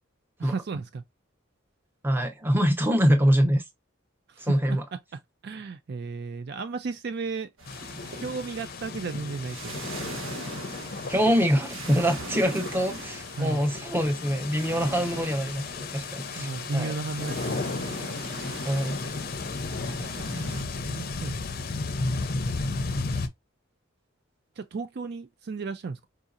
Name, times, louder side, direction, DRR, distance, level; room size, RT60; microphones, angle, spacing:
voice 1, 0.4-1.0 4.3-4.8 5.1-7.5 8.2-9.8 13.4-13.6 16.4-18.0 19.9-21.4 24.6-26.0, right 4 dB, 50° right, 0.4 m, -35 dB
voice 2, 2.0-3.6 4.4-4.8 11.1-17.0 18.6-19.0, equal, 10° right, 0.7 m, -24 dB
sound 1, 7.6-20.6, right 2 dB, 70° right, 1.4 m, -42 dB
sound 2, 7.7-23.3, left 3 dB, 45° left, 0.5 m, -34 dB
4.8 x 2.7 x 2.5 m
head